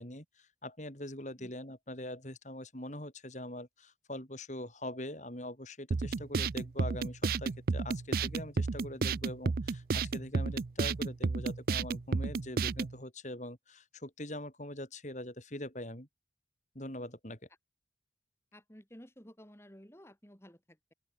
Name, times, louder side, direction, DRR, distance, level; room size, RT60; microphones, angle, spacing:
voice 1, 0.0-16.1 16.7-17.4, left 1 dB, 40° left, 4.7 m, -43 dB
sound 1, 5.9-12.9, right 4 dB, 55° right, 0.5 m, -32 dB
voice 2, 18.5-20.9, equal, 15° left, 2.9 m, -54 dB
open air
head